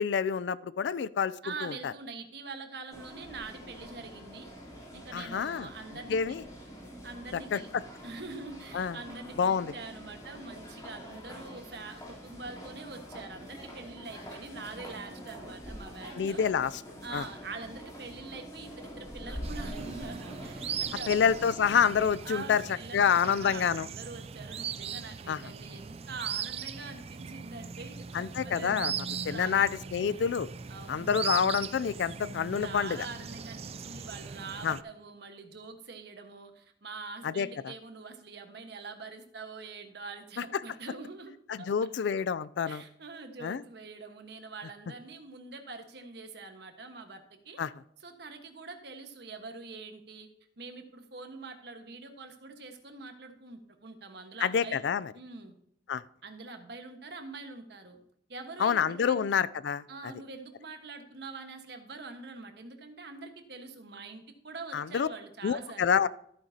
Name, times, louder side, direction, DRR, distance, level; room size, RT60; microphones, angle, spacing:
voice 1, 0.0-1.3 1.6-1.9 5.1-5.7 6.1-6.4 7.3-7.6 8.7-9.0 9.4-9.7 16.2-16.7 17.1-17.2 21.1-22.6 22.9-23.9 25.3-25.4 28.1-28.9 29.3-30.5 30.9-33.1 34.6-34.8 37.2-37.7 41.5-42.8 43.4-43.6 47.6-47.7 54.4-55.1 55.9-56.0 58.6-59.8 64.7-65.1 65.4-66.1, left 7 dB, 80° left, 17 dB, 0.4 m, -27 dB
voice 2, 1.4-4.5 4.9-6.4 7.0-7.7 8.0-16.4 17.0-21.1 22.2-28.9 29.3-29.6 30.7-31.3 32.6-41.3 41.6-41.7 42.7-47.6 48.0-50.3 50.6-54.8 55.1-55.5 56.2-58.0 58.3-59.3 59.9-66.0, right 3 dB, 65° right, 6 dB, 1.4 m, -44 dB
sound 1, 2.9-22.1, equal, 20° left, 3.3 m, -45 dB
sound 2, 19.4-34.8, right 7 dB, 35° right, 0.4 m, -39 dB
13.5 x 8.7 x 2.8 m, 0.71 s
head